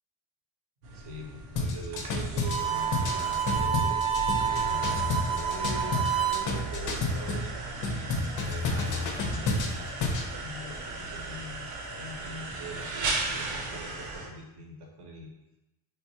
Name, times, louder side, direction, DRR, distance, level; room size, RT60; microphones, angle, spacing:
sound 1, 0.8-14.3, right 3 dB, 85° right, 0.7 m, -38 dB
voice 1, 0.9-11.7 12.0-15.3, right 1 dB, 50° right, 0 dB, 0.8 m, -43 dB
sound 2, 1.6-7.5 7.8-10.3, left 3 dB, 40° left, 0.4 m, -30 dB
Harmonica, 2.4-6.5, right 8 dB, 15° right, 0.5 m, -29 dB
3.1 x 2.2 x 2.7 m, 0.94 s
cardioid pair, 120°, 49 cm